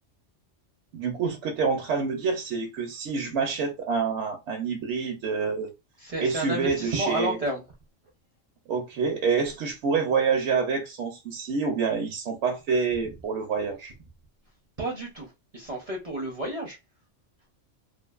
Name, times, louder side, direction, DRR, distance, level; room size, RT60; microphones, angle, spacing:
voice 1, 0.9-5.7 6.2-7.4 8.7-13.9, right 5 dB, 70° right, 0.8 m, -27 dB
voice 2, 6.0-7.6 14.8-16.8, right 1 dB, 40° right, 0.5 m, -31 dB
2.5 x 2.4 x 2.3 m
omnidirectional pair, 1.3 m